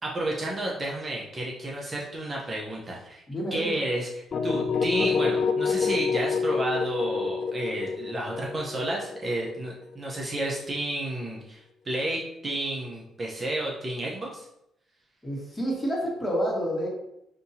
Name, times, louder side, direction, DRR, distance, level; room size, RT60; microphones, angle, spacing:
voice 1, 0.0-3.2 3.5-14.5, right 1 dB, 30° right, -3 dB, 0.8 m, -31 dB
voice 2, 3.3-3.7 15.2-16.9, equal, 15° left, -3 dB, 1.5 m, -29 dB
sound 1, 4.3-10.2, left 5 dB, 50° left, 0.4 m, -27 dB
5.3 x 2.8 x 2.8 m, 0.81 s
cardioid pair, 90°, 0 cm